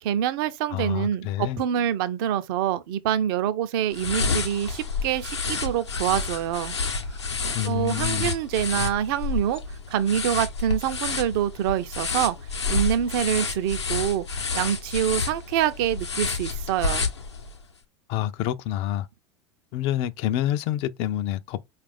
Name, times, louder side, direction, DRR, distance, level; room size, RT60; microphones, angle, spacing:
voice 1, 0.0-6.8 7.6-9.6 9.9-12.4 12.7-17.1, right 10 dB, 55° right, 0.5 m, -26 dB
voice 2, 0.7-1.6 7.5-8.3 18.1-19.1 19.7-21.6, left 12 dB, 45° left, 0.4 m, -27 dB
sound 1, 3.9-17.6, left 4 dB, 85° left, 0.7 m, -29 dB
4.6 x 2.4 x 3.5 m
figure-of-eight pair, 80°, 14 cm